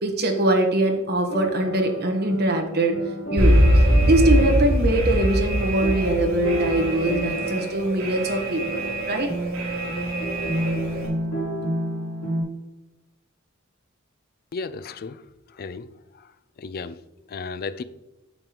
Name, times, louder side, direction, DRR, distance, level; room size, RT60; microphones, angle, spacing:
voice 1, 0.0-3.0 3.3-9.3, right 1 dB, 50° right, 3 dB, 1.2 m, -23 dB
sound 1, 1.3-12.4, right 1 dB, 75° left, 2.7 m, -31 dB
Alarm, 3.4-11.1, equal, 85° right, 2.7 m, -22 dB
voice 2, 14.5-15.2 15.5-15.9 16.1-16.3 16.6-17.0 17.3-17.8, left 4 dB, 45° left, 14 dB, 0.4 m, -34 dB
8.8 x 6.8 x 3.0 m, 1.0 s
head